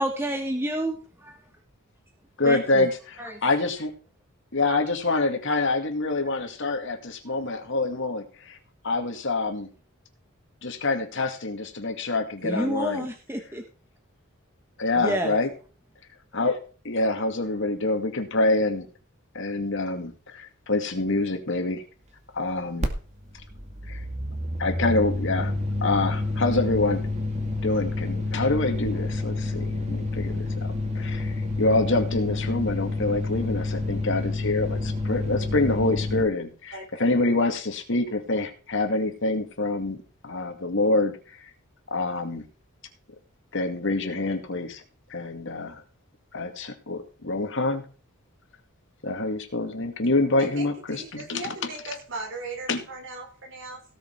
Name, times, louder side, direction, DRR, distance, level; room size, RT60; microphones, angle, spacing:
voice 1, 0.0-1.4 2.4-2.9 3.2-3.4 12.4-13.6 15.0-15.4, equal, 10° right, 4 dB, 1.4 m, -29 dB
voice 2, 2.4-3.9 4.5-8.6 8.8-9.7 10.6-13.1 14.8-15.5 16.3-16.6 16.8-18.9 19.3-21.8 22.3-22.9 23.9-24.0 24.6-25.5 25.8-27.0 27.6-40.0 40.2-41.5 41.9-42.4 43.5-44.8 45.1-45.8 46.3-47.8 49.0-51.5 52.7-52.8, left 2 dB, 65° left, 6 dB, 2.2 m, -26 dB
sound 1, 22.8-22.9 23.2-36.2, left 2 dB, 35° right, 2.2 m, -29 dB
voice 3, 36.7-37.1 50.4-53.8, right 3 dB, 60° right, 3 dB, 4.8 m, -38 dB
17.5 x 6.9 x 4.7 m, 0.37 s
head